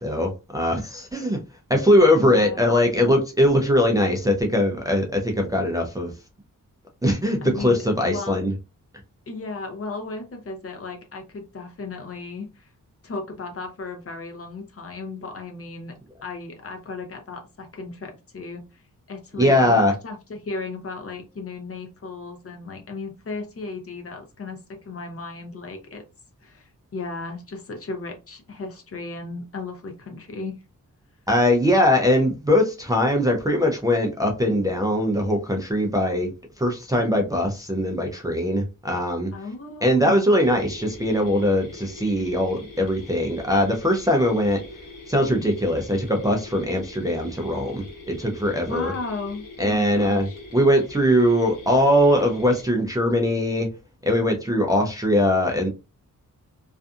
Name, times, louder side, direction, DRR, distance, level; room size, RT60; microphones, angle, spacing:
voice 1, 0.0-1.4 1.7-6.1 7.0-8.5 19.4-19.9 31.3-39.3 39.8-44.6 45.1-48.9 49.6-50.3 50.5-53.7 54.1-55.7, left 1 dB, 10° right, 1 dB, 0.4 m, -21 dB
voice 2, 2.2-2.6 7.4-8.4 9.3-12.7 13.0-16.0 16.2-18.8 19.1-26.0 26.4-30.6 39.3-40.2 48.7-50.4, left 3 dB, 45° left, 3 dB, 0.7 m, -35 dB
sound 1, 40.4-52.6, left 2 dB, 85° left, 0.9 m, -43 dB
2.5 x 2.5 x 2.3 m, 0.28 s
wide cardioid pair, 155°, 32 cm